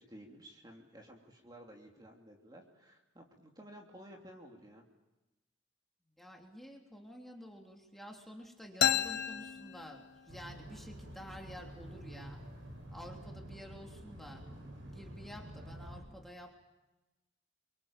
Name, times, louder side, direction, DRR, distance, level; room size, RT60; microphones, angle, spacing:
voice 1, 0.0-4.9, equal, 20° right, 1 dB, 2.9 m, -54 dB
voice 2, 6.2-12.4 12.9-14.5 14.9-16.6, equal, ahead, 1 dB, 3.1 m, -50 dB
sound 1, 8.8-10.5, left 10 dB, 55° left, 0.9 m, -32 dB
sound 2, 10.3-16.0, right 1 dB, 90° right, 6.3 m, -49 dB
28.0 x 24.0 x 7.3 m, 1.0 s
head